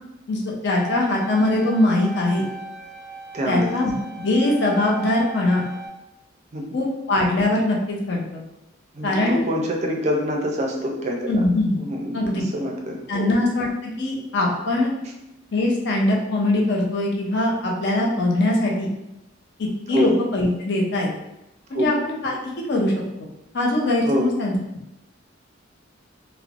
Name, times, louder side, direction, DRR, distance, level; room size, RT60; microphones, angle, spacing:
voice 1, 0.3-2.4 3.5-5.6 6.7-8.4 9.0-9.4 11.3-11.8 12.1-12.4 13.1-14.9 15.5-18.9 19.6-21.1 21.7-22.3 22.7-22.9 23.5-24.5, left 2 dB, 60° left, -1 dB, 0.5 m, -22 dB
sound 1, 0.6-5.9, right 3 dB, 40° left, 1.2 m, -37 dB
voice 2, 3.3-3.7 6.5-6.6 8.9-11.4 11.8-13.3 19.9-20.1 21.7-21.9 24.1-24.3, equal, 35° right, 0 dB, 0.4 m, -26 dB
3.0 x 2.0 x 2.4 m, 0.90 s
head